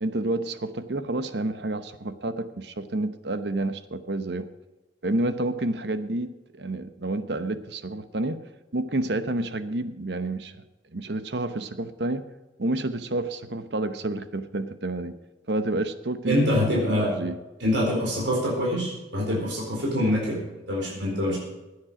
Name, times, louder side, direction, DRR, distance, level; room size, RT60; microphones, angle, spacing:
voice 1, 0.0-4.5 5.0-8.4 8.7-10.5 10.9-12.2 12.6-15.2 15.5-17.4, right 2 dB, 65° right, 11 dB, 0.9 m, -29 dB
voice 2, 16.2-17.1 17.6-20.4 20.7-21.4, equal, 85° right, -2 dB, 4.4 m, -25 dB
16.0 x 9.7 x 5.0 m, 1.1 s
head